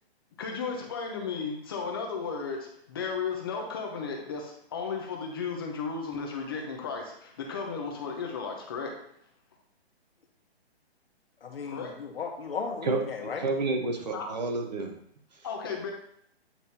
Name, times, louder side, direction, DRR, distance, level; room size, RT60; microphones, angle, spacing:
voice 1, 0.4-9.0 11.7-11.9 14.1-14.3 15.4-15.9, left 5 dB, 20° left, 1 dB, 0.8 m, -34 dB
voice 2, 11.4-13.5, left 5 dB, 60° left, 2 dB, 1.5 m, -35 dB
voice 3, 13.4-15.0, right 3 dB, 40° right, 4 dB, 1.1 m, -29 dB
8.5 x 3.4 x 4.3 m, 0.69 s
hypercardioid pair, 170°, 32 cm